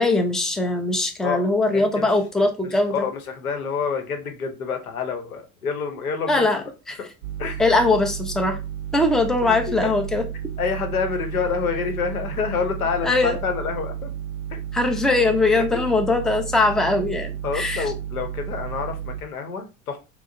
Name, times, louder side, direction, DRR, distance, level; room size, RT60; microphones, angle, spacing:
voice 1, 0.0-2.9 6.3-6.6 6.9-7.0 7.6-8.6 8.9-10.2 13.0-13.4 14.7-17.9, left 2 dB, ahead, 4 dB, 0.5 m, -21 dB
voice 2, 1.2-2.1 2.6-6.7 7.0-7.1 7.4-7.6 9.4-9.9 10.6-14.1 14.5-14.6 15.7-15.8 17.4-20.0, left 6 dB, 90° left, 6 dB, 0.8 m, -28 dB
sound 1, 7.2-19.2, right 9 dB, 85° right, 0.5 m, -32 dB
4.6 x 2.0 x 2.6 m, 0.31 s
hypercardioid pair, 75°, 42 cm